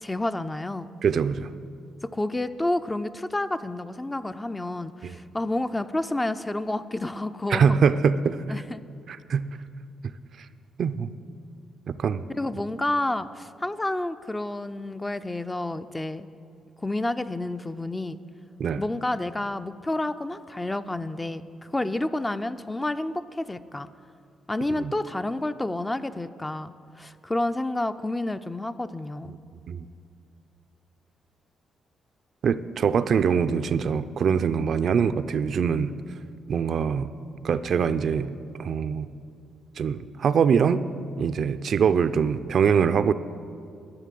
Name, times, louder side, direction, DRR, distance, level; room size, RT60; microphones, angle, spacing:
voice 1, 0.0-0.9 2.1-7.8 8.5-8.8 12.3-16.3 16.8-18.2 18.8-23.9 24.5-29.3, left 2 dB, 15° left, 11 dB, 0.4 m, -29 dB
voice 2, 1.0-1.5 5.0-5.1 7.5-8.5 9.1-9.5 10.8-11.1 11.9-12.2 18.6-18.8 24.8-24.9 29.7-29.9 32.4-36.0 36.5-37.1 37.4-38.3 38.6-39.1 39.8-40.8 41.2-43.1, right 6 dB, 55° right, 12 dB, 0.4 m, -23 dB
11.5 x 6.5 x 7.6 m, 2.4 s
cardioid pair, 90°, 0 cm